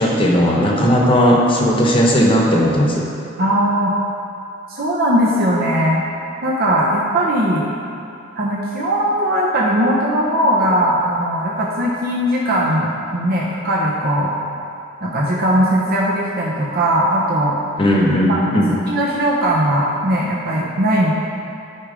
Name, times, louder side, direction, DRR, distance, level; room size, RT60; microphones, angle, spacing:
voice 1, 0.0-3.1 17.8-18.7, equal, 25° left, -2 dB, 1.1 m, -16 dB
voice 2, 3.4-3.9 4.7-6.0 6.4-7.7 8.4-14.3 15.0-17.6 18.3-21.1, right 1 dB, 50° right, -4 dB, 0.9 m, -19 dB
10.5 x 4.9 x 5.1 m, 2.7 s
head